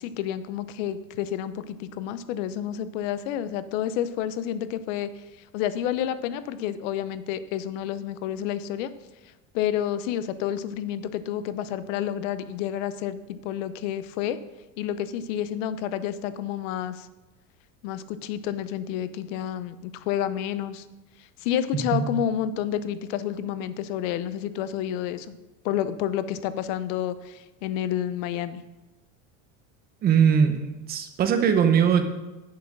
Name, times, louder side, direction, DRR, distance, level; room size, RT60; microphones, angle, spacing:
voice 1, 0.0-5.2 5.5-8.9 9.5-14.4 14.8-17.1 17.8-20.9 21.2-25.4 25.6-28.6, left 10 dB, 65° left, 13 dB, 0.8 m, -29 dB
voice 2, 30.0-32.0, right 7 dB, 25° right, 8 dB, 0.7 m, -20 dB
8.7 x 7.3 x 6.0 m, 1.1 s
cardioid pair, 170°, 41 cm